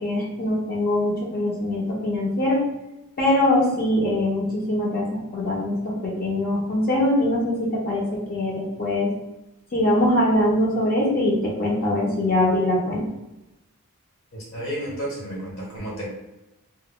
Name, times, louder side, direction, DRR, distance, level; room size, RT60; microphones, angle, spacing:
voice 1, 0.0-2.6 3.2-9.1 9.7-13.0, left 1 dB, 45° left, -3 dB, 0.5 m, -22 dB
voice 2, 14.3-16.1, right 1 dB, 60° left, -5 dB, 1.1 m, -32 dB
2.1 x 2.1 x 3.5 m, 0.96 s
head